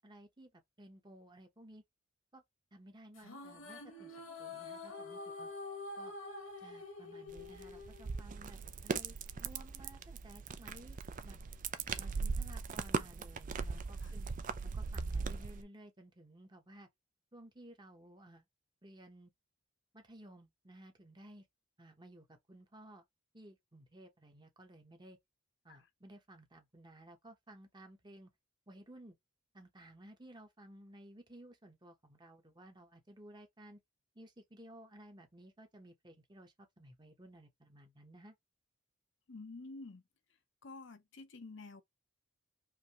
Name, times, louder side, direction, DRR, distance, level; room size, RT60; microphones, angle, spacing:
voice 1, 0.0-1.8 2.3-2.4 2.7-5.5 6.0-6.2 6.6-11.4 12.0-14.3 14.7-16.9 17.3-18.5 18.8-19.3 19.9-21.5 21.8-23.1 23.3-25.2 25.6-28.3 28.7-29.2 29.5-33.8 34.1-38.4, right 1 dB, 20° right, 0.9 m, -56 dB
sound 1, 3.1-8.6, left 3 dB, 75° left, 1.3 m, -47 dB
sound 2, 7.3-15.6, right 4 dB, 35° right, 0.4 m, -39 dB
voice 2, 39.3-40.0 40.6-41.8, left 3 dB, 55° left, 0.6 m, -49 dB
4.9 x 2.8 x 2.9 m
head